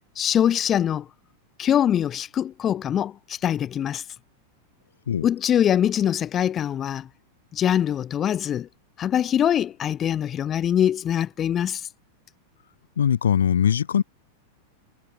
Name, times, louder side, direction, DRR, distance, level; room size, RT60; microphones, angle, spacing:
voice 1, 0.2-1.1 1.6-4.0 5.2-7.1 7.5-8.7 9.0-11.9, left 10 dB, 25° left, 5.6 m, -23 dB
voice 2, 13.0-14.0, left 8 dB, 65° left, 6.6 m, -21 dB
figure-of-eight pair, 90°, 0 cm